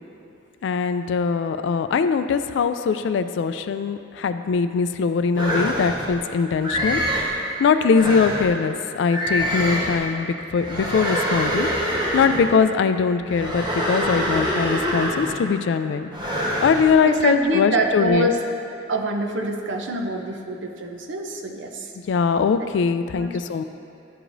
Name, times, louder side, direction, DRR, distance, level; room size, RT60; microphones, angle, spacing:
voice 1, 0.6-11.7 11.9-16.1 16.6-18.3 22.1-23.6, left 5 dB, 70° left, 10 dB, 0.3 m, -21 dB
sound 1, 5.3-6.1 6.6-7.4 7.9-8.5 9.1-10.1 10.6-12.5 13.3-15.5 16.1-16.9, equal, 25° right, 1.1 m, -25 dB
voice 2, 17.1-18.4 18.9-21.9 22.6-22.7 23.2-23.4, right 1 dB, 75° right, 3 dB, 0.6 m, -25 dB
11.0 x 4.8 x 2.6 m, 2.7 s
head